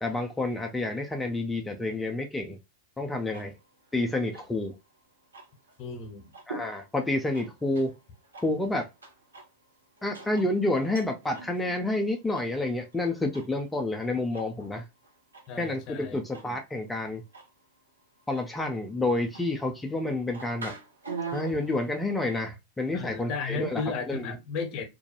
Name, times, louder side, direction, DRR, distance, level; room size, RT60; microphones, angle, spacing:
voice 1, 0.0-2.6 3.0-3.5 3.9-4.7 6.5-7.9 8.4-8.9 10.0-14.8 15.6-17.2 18.3-20.7 21.3-24.4, left 2 dB, 10° left, 0.5 m, -29 dB
sound 1, 3.2-22.4, right 4 dB, 75° right, 0.6 m, -46 dB
voice 2, 5.8-6.3 15.5-16.2 22.9-24.8, left 5 dB, 40° left, 0.8 m, -34 dB
2.4 x 2.2 x 2.9 m
figure-of-eight pair, 90°, 0 cm